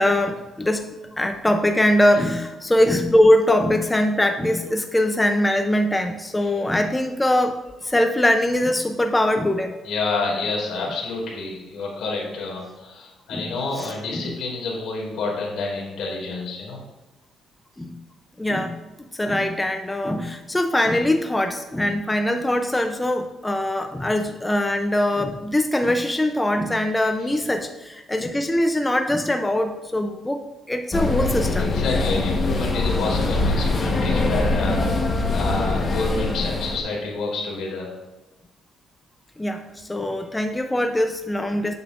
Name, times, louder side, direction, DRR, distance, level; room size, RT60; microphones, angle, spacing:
voice 1, 0.0-9.7 13.3-13.4 13.8-14.3 17.8-17.9 18.4-18.8 19.1-31.8 39.4-41.7, left 1 dB, 10° left, 6 dB, 0.4 m, -22 dB
voice 2, 9.8-16.8 31.6-35.0 35.3-37.9, left 3 dB, 75° left, -2 dB, 2.3 m, -28 dB
sound 1, 30.9-36.8, left 2 dB, 30° left, 1.1 m, -23 dB
7.7 x 6.9 x 2.5 m, 1.1 s
cardioid pair, 105°, 0 cm